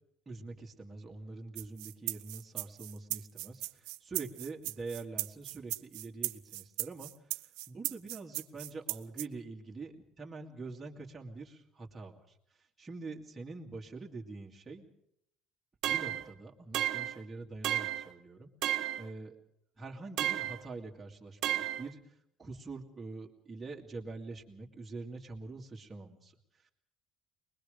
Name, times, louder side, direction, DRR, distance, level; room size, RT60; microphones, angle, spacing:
voice 1, 0.3-7.1 7.7-12.2 12.8-14.9 15.8-18.5 19.0-19.4 19.8-22.0 22.4-26.3, right 3 dB, 15° right, -1 dB, 2.3 m, -45 dB
sound 1, 1.6-9.3, right 21 dB, 80° right, 0.7 m, -38 dB
sound 2, 15.8-16.3 16.7-17.2 17.6-18.1 18.6-19.1 20.2-20.6 21.4-21.9, right 12 dB, 50° right, 1.3 m, -32 dB
24.5 x 21.0 x 5.1 m, 0.75 s
cardioid pair, 175°, 0 cm